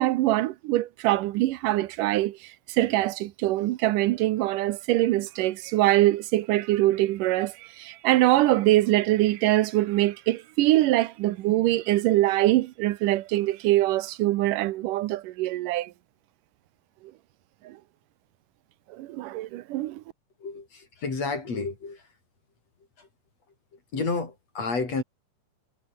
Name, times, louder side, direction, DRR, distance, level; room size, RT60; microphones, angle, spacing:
voice 1, 0.0-15.9 17.6-17.8 18.9-20.0, right 16 dB, 85° right, 2.4 m, -23 dB
voice 2, 20.4-22.1 23.0-23.1 23.9-25.0, left 4 dB, 50° left, 6.5 m, -30 dB
omnidirectional pair, 3.7 m